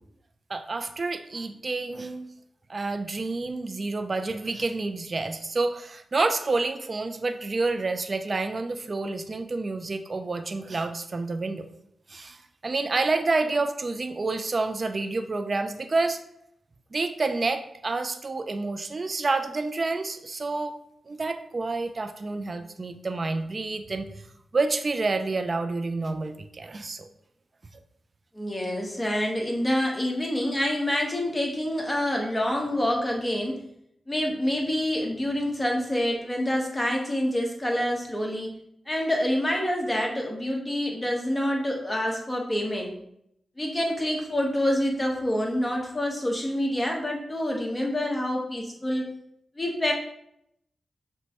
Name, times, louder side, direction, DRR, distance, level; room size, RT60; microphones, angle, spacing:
voice 1, 0.5-2.3 2.7-11.7 12.1-16.2 16.9-20.8 21.1-24.1 24.5-27.0, right 3 dB, 50° right, 8 dB, 0.4 m, -28 dB
voice 2, 28.3-33.6 34.1-38.5 38.9-42.9 43.6-49.1 49.6-49.9, left 1 dB, 20° left, 0 dB, 1.1 m, -27 dB
6.0 x 2.2 x 2.9 m, 0.74 s
cardioid pair, 45°, 0 cm